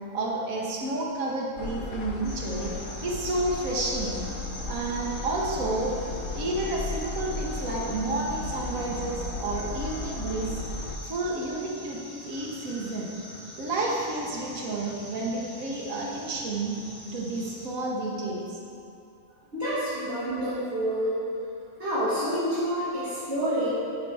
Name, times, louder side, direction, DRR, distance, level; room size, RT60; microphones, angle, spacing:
voice 1, 0.1-2.7 3.0-4.2 4.7-5.9 6.3-10.6 11.0-13.1 13.6-16.8 17.1-18.6, right 2 dB, 65° right, -3 dB, 1.4 m, -30 dB
sound 1, 1.6-11.0, left 3 dB, 65° left, 0.9 m, -35 dB
sound 2, 2.2-17.7, left 1 dB, 85° left, 2.2 m, -43 dB
voice 2, 19.5-21.2 21.8-23.7, equal, 50° right, -13 dB, 1.8 m, -28 dB
8.9 x 4.4 x 3.3 m, 2.7 s
omnidirectional pair, 1.6 m